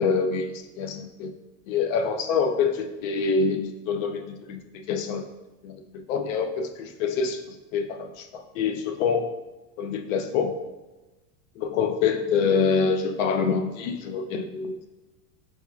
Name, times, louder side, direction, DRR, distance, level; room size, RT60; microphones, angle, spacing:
voice 1, 0.0-1.3 1.7-5.3 5.6-9.3 9.8-10.6 11.6-14.9, left 5 dB, 90° left, 5 dB, 0.5 m, -26 dB
4.5 x 2.3 x 2.3 m, 1.1 s
supercardioid pair, 135°, 38 cm